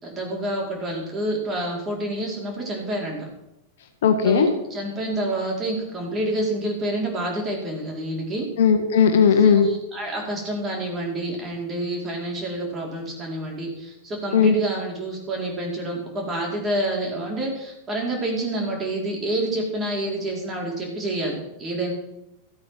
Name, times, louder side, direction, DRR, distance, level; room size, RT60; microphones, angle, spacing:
voice 1, 0.0-3.3 4.2-8.5 9.3-21.9, right 1 dB, 20° right, -1 dB, 4.5 m, -28 dB
voice 2, 4.0-4.5 8.6-9.7 14.3-14.5, left 6 dB, 60° left, 6 dB, 1.5 m, -17 dB
14.0 x 8.5 x 6.0 m, 0.87 s
figure-of-eight pair, 90°, 0 cm